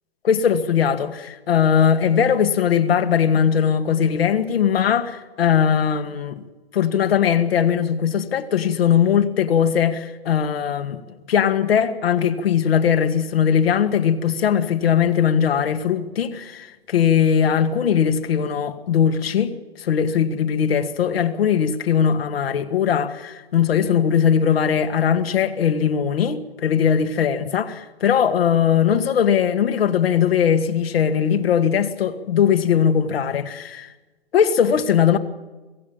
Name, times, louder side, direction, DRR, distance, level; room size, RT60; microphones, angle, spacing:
voice 1, 0.2-6.3 6.7-11.0 11.3-33.9 34.3-35.2, left 8 dB, 70° left, 2.2 m, -20 dB
26.0 x 16.5 x 8.9 m
hypercardioid pair, 130°, 31 cm